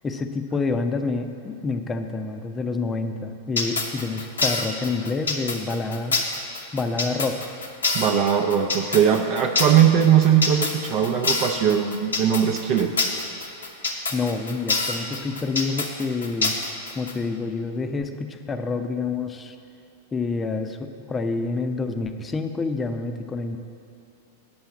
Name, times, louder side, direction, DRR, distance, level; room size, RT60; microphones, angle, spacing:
voice 1, 0.0-6.2 6.7-7.5 14.1-16.5 17.0-19.6 20.1-23.6, left 3 dB, 20° left, 7 dB, 0.6 m, -28 dB
sound 1, 3.6-17.1, left 3 dB, 80° left, 1.0 m, -26 dB
voice 2, 7.9-12.9, right 9 dB, 50° right, 2 dB, 0.6 m, -20 dB
8.7 x 5.5 x 7.2 m, 2.6 s
figure-of-eight pair, 95°, 0 cm